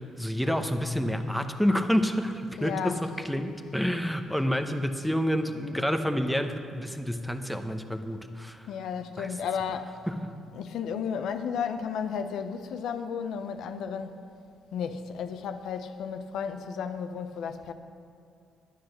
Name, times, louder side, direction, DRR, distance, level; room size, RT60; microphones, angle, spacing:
voice 1, 0.0-8.7 9.2-9.3 10.1-10.3, equal, ahead, 7 dB, 0.9 m, -29 dB
voice 2, 2.6-3.1 8.7-10.0 10.5-14.2 14.7-17.7, left 7 dB, 80° left, 8 dB, 0.7 m, -33 dB
10.0 x 10.0 x 6.5 m, 2.4 s
cardioid pair, 90°, 0 cm